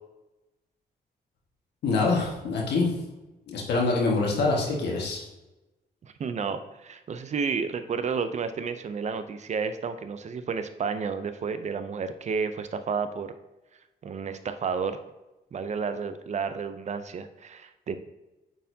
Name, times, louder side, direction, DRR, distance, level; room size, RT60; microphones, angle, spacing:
voice 1, 1.8-2.9 3.5-5.2, left 3 dB, 85° left, -2 dB, 1.5 m, -25 dB
voice 2, 6.0-13.3 14.0-15.0 15.5-18.0, right 5 dB, 45° right, 10 dB, 0.5 m, -31 dB
9.0 x 4.3 x 2.7 m, 1.0 s
cardioid pair, 110°, 17 cm